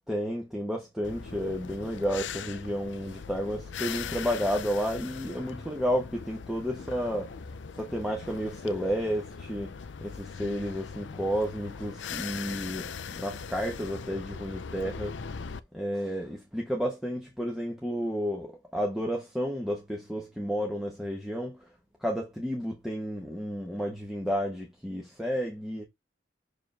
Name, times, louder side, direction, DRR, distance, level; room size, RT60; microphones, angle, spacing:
voice 1, 0.1-7.4 7.7-15.4 15.7-21.7 22.0-25.9, equal, ahead, 1.1 m, -32 dB
sound 1, 1.0-15.6, left 6 dB, 85° left, 0.5 m, -40 dB
6.4 x 4.8 x 3.3 m
head